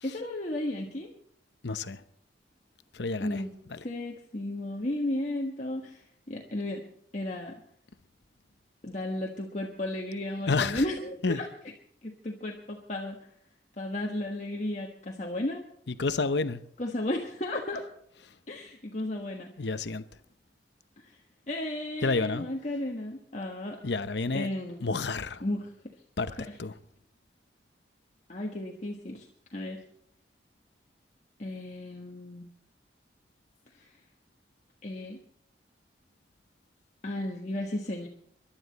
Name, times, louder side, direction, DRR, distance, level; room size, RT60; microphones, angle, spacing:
voice 1, 0.0-1.1 3.2-3.5 3.8-6.8 7.1-7.6 8.8-11.5 12.0-13.2 13.8-15.6 16.8-17.8 18.5-19.5 21.0-21.2 21.5-23.8 24.3-25.0 25.4-25.7 26.3-26.5 28.3-29.3 29.5-29.8 31.4-32.5 33.8-33.9 34.8-35.2 37.0-38.1, left 1 dB, 40° left, 1.4 m, -34 dB
voice 2, 1.6-2.0 2.9-3.9 10.5-10.9 11.2-11.4 15.9-16.6 18.2-18.3 19.6-20.0 22.0-22.5 23.8-24.5 24.8-25.4 26.2-26.3 26.6-26.7, left 3 dB, 75° left, 0.8 m, -30 dB
24.0 x 11.5 x 4.1 m
head